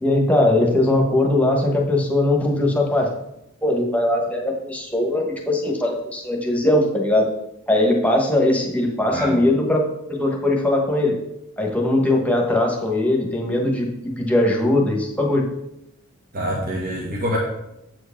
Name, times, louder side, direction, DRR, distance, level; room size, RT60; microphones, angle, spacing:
voice 1, 0.0-3.1 3.6-7.3 7.7-11.2 11.6-15.5, left 1 dB, 5° left, 0 dB, 1.2 m, -20 dB
voice 2, 16.3-17.4, equal, 45° right, -3 dB, 1.4 m, -25 dB
7.7 x 4.7 x 5.8 m, 0.84 s
head